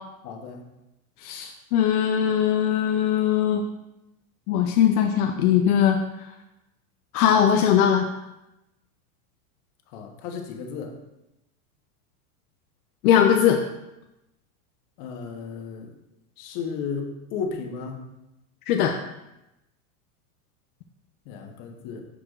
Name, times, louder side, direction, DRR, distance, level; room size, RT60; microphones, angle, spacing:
voice 1, 0.2-0.6 9.9-11.0 15.0-15.9 16.4-18.0 21.3-22.0, left 5 dB, 45° left, 3 dB, 1.2 m, -34 dB
voice 2, 1.2-3.6 4.5-6.0 7.1-8.1 13.0-13.6 18.7-18.9, left 9 dB, 75° left, 4 dB, 0.7 m, -20 dB
11.0 x 4.8 x 2.5 m, 0.91 s
supercardioid pair, 145°, 45 cm